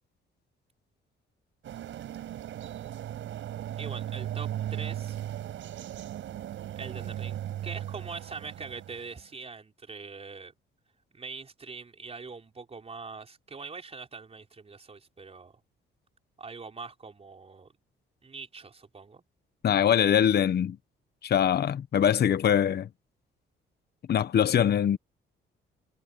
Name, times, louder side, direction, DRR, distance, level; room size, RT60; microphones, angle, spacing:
sound 1, 1.6-9.2, right 11 dB, 75° right, 6.6 m, -37 dB
voice 1, 3.8-5.2 6.7-10.5 11.1-15.6 16.4-17.7 18.2-19.2, right 4 dB, 30° right, 4.4 m, -43 dB
voice 2, 19.6-20.8 21.2-22.9 24.1-25.0, left 9 dB, 55° left, 1.1 m, -23 dB
cardioid pair, 90°, 20 cm